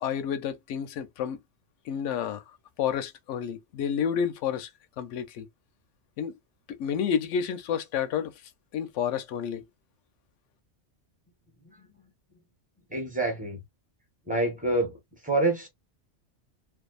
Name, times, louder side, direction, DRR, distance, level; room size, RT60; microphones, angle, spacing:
voice 1, 0.0-1.4 1.9-2.4 2.8-4.7 5.0-5.5 6.2-6.3 6.8-8.3 8.7-9.6, left 8 dB, 90° left, 0.9 m, -30 dB
voice 2, 12.9-13.6 14.3-15.0 15.2-15.7, right 2 dB, 10° right, 0.9 m, -26 dB
2.6 x 2.3 x 2.3 m
omnidirectional pair, 1.2 m